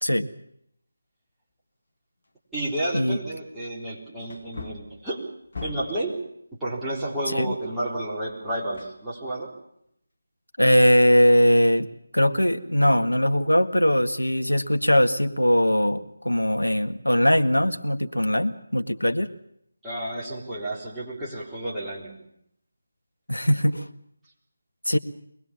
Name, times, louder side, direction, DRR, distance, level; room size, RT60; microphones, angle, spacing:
Wood, 2.2-2.3 2.9-3.0 4.2-6.1 8.7-9.5 9.9-10.0, left 4 dB, 45° left, 2.7 m, -40 dB
voice 1, 2.5-5.3 5.6-6.2 6.5-9.5 19.8-22.2, right 1 dB, 5° right, -9 dB, 3.8 m, -31 dB
voice 2, 10.6-11.9 12.1-19.3 23.3-23.9 24.9-25.0, equal, 80° left, 8 dB, 1.8 m, -20 dB
23.5 x 20.5 x 7.3 m, 0.75 s
figure-of-eight pair, 155°, 0 cm